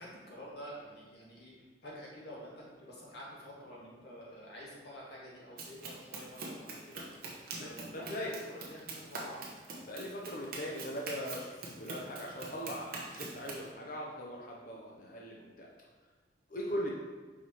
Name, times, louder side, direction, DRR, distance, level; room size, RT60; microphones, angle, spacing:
voice 1, 0.0-1.5 1.8-7.0 7.5-9.4, equal, 65° left, -5 dB, 1.7 m, -49 dB
Run, 5.6-13.7, right 3 dB, 55° right, 1.0 m, -44 dB
voice 2, 7.6-8.3 9.8-15.7 16.5-16.9, equal, 50° left, -3 dB, 0.8 m, -40 dB
5.0 x 4.7 x 4.2 m, 1.3 s
head